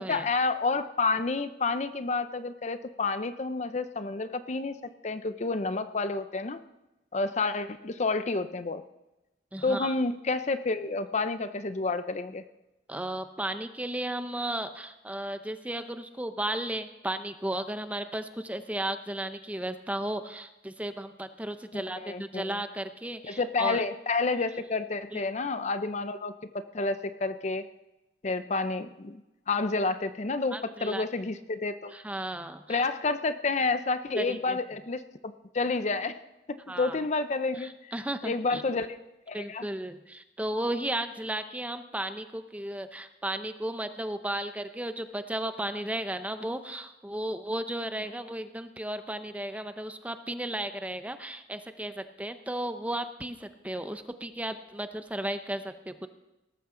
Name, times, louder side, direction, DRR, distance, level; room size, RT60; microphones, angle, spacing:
voice 1, 0.1-6.6 7.1-8.8 9.6-12.4 21.7-22.5 23.2-27.7 28.2-29.2 29.5-31.9 32.7-36.2 36.5-37.9 38.2-39.0 39.3-39.7, left 3 dB, 40° left, 11 dB, 0.6 m, -30 dB
voice 2, 9.5-9.9 12.9-23.8 25.1-25.2 30.5-31.0 31.9-32.8 34.2-34.6 36.7-37.0 37.6-38.6 39.3-56.1, right 1 dB, 10° right, 9 dB, 0.7 m, -34 dB
18.0 x 14.0 x 3.8 m, 0.98 s
head